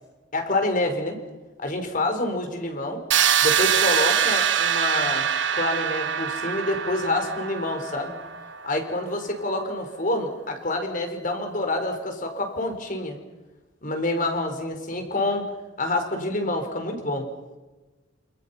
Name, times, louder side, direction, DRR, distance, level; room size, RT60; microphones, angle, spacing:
voice 1, 0.3-1.2 1.6-3.0 3.4-5.3 5.5-8.1 8.6-13.2 13.8-15.4 15.8-17.3, left 2 dB, 45° left, 5 dB, 4.9 m, -27 dB
sound 1, 3.1-8.9, right 9 dB, 75° right, 1.6 m, -24 dB
28.5 x 28.0 x 5.8 m, 1.2 s
head